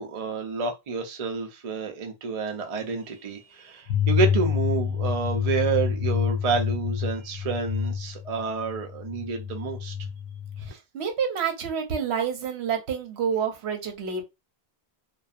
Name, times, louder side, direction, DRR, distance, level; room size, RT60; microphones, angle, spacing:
voice 1, 0.0-9.9, right 4 dB, 45° right, 0.5 m, -29 dB
sound 1, 3.9-10.7, left 8 dB, 65° left, 0.8 m, -28 dB
voice 2, 10.6-14.2, right 7 dB, 75° right, 0.9 m, -28 dB
2.6 x 2.3 x 2.3 m
omnidirectional pair, 1.1 m